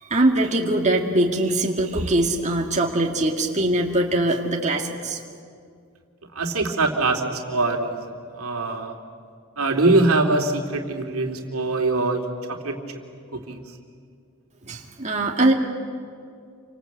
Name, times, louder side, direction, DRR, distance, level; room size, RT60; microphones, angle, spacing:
voice 1, 0.0-5.2 14.6-15.5, right 1 dB, 35° right, 0 dB, 2.1 m, -22 dB
voice 2, 6.4-7.2 7.5-8.0 8.3-8.9 9.6-12.2 12.5-12.8 13.3-13.6, right 2 dB, 80° right, 3 dB, 2.8 m, -22 dB
29.0 x 25.5 x 8.1 m, 2.3 s
head